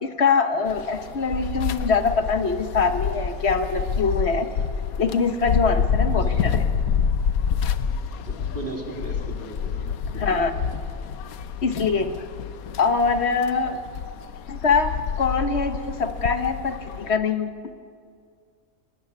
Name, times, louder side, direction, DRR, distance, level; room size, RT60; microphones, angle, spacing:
voice 1, 0.0-4.5 5.0-6.7 10.2-10.5 11.6-12.1 12.8-13.8 14.5-17.5, left 5 dB, 50° left, 8 dB, 1.4 m, -23 dB
sound 1, 0.7-17.1, left 6 dB, 90° left, 1.3 m, -28 dB
voice 2, 8.1-9.8 10.1-10.4, right 1 dB, 35° right, 1 dB, 3.3 m, -36 dB
23.0 x 18.5 x 9.4 m, 2.2 s
omnidirectional pair, 1.5 m